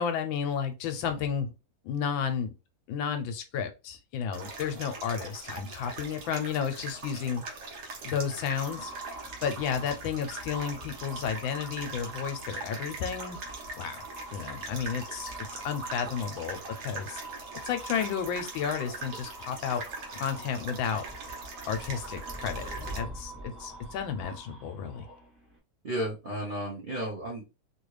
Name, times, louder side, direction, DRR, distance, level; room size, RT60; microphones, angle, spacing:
voice 1, 0.0-1.5 1.8-2.5 2.9-7.4 8.0-8.9 9.4-13.4 13.7-14.0 14.3-15.3 15.6-17.2 17.6-19.8 20.1-21.0 21.7-22.6 23.0-25.1, left 7 dB, 75° left, 7 dB, 1.3 m, -32 dB
sound 1, 4.3-23.0, right 3 dB, 60° right, 1.3 m, -42 dB
sound 2, 8.5-25.6, right 1 dB, ahead, 0.6 m, -44 dB
voice 2, 25.8-27.4, right 1 dB, 80° right, -5 dB, 0.4 m, -33 dB
3.3 x 2.4 x 3.1 m, 0.28 s
omnidirectional pair, 2.2 m